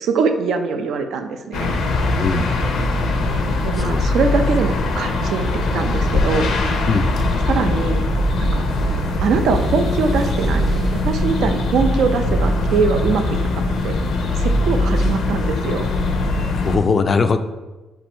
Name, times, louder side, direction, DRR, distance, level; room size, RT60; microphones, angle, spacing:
voice 1, 0.0-1.8 3.6-6.5 7.5-8.0 8.4-8.7 9.2-10.6 10.9-14.0 14.4-15.9, right 5 dB, 75° right, 7 dB, 0.4 m, -22 dB
sound 1, 1.5-16.8, left 2 dB, 80° left, 0.6 m, -21 dB
voice 2, 2.2-2.5 3.7-4.1 6.9-7.1 16.5-17.4, left 4 dB, 40° left, 10 dB, 0.3 m, -20 dB
sound 2, 3.1-16.2, right 4 dB, 55° right, 0.9 m, -30 dB
4.4 x 2.6 x 4.3 m, 1.1 s
cardioid pair, 90°, 0 cm